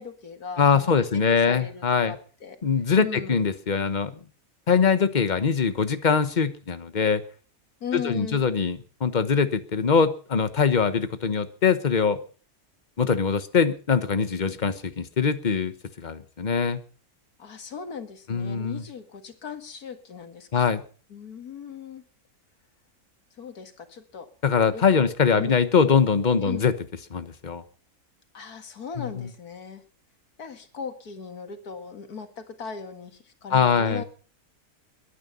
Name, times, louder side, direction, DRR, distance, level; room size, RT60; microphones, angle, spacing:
voice 1, 0.0-2.6 3.0-3.4 7.8-8.4 17.4-20.7 21.1-22.0 23.4-24.3 24.7-25.6 26.4-26.7 28.3-29.8 30.4-34.0, left 6 dB, 85° left, 7 dB, 2.3 m, -38 dB
voice 2, 0.6-2.1 2.6-4.1 4.7-7.2 7.9-12.2 13.0-15.7 16.0-16.8 18.3-18.8 20.5-20.8 24.4-26.7 27.1-27.6 29.0-29.1 33.5-34.0, left 6 dB, 35° left, 11 dB, 1.2 m, -22 dB
22.0 x 9.9 x 5.5 m, 0.40 s
omnidirectional pair, 1.6 m